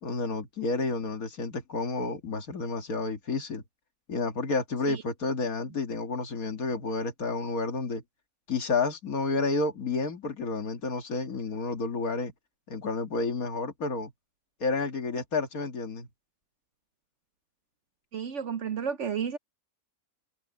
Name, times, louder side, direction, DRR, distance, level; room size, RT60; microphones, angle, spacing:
voice 1, 0.0-3.6 4.1-8.0 8.5-12.3 12.7-14.1 14.6-16.1, left 3 dB, 65° left, 2.3 m, -30 dB
voice 2, 18.1-19.4, right 7 dB, 55° right, 1.0 m, -32 dB
omnidirectional pair, 1.7 m